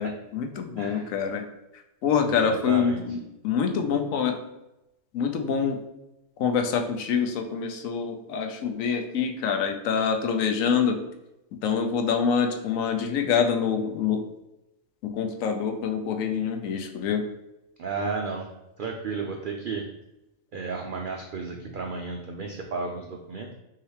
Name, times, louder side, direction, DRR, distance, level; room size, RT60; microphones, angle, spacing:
voice 1, 0.0-1.4 2.0-3.2 3.4-4.4 5.1-5.8 6.4-11.0 11.6-14.2 15.0-17.2, left 6 dB, 80° left, 5 dB, 1.0 m, -26 dB
voice 2, 0.8-1.1 2.3-3.0 17.8-18.5 18.8-19.8 20.5-23.5, right 4 dB, 75° right, 2 dB, 0.4 m, -33 dB
5.6 x 2.9 x 3.2 m, 0.91 s
omnidirectional pair, 1.4 m